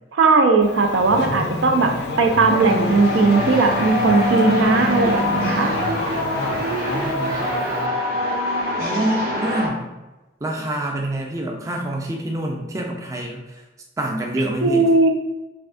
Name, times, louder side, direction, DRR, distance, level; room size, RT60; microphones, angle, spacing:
voice 1, 0.1-1.9 2.2-5.7 14.6-15.1, right 3 dB, 90° right, 4 dB, 0.4 m, -18 dB
Race car auto racing / Accelerating revving vroom, 0.6-7.9, left 2 dB, 65° left, 0.3 m, -27 dB
voice 2, 1.3-2.0 6.6-7.9 8.8-9.9 10.4-13.6 14.0-14.9, right 1 dB, 15° right, 0 dB, 0.3 m, -27 dB
sound 1, 2.1-9.7, equal, 55° right, 0.7 m, -25 dB
3.3 x 2.7 x 2.5 m, 1.1 s
head